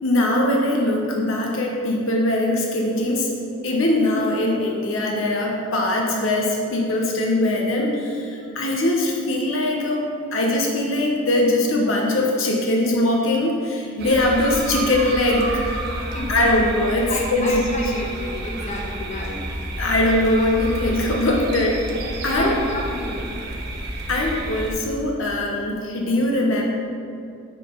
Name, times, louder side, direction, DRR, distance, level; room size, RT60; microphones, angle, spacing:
voice 1, 0.0-3.3 3.6-15.5 16.3-17.9 19.8-21.8 22.2-22.5 24.1-26.6, left 1 dB, 75° left, 0 dB, 0.9 m, -21 dB
sound 1, 14.0-24.7, right 1 dB, 55° right, 0.9 m, -30 dB
voice 2, 16.1-16.6 17.1-19.4 22.2-23.3, left 1 dB, 35° left, -2 dB, 1.1 m, -30 dB
8.2 x 4.0 x 5.1 m, 2.5 s
head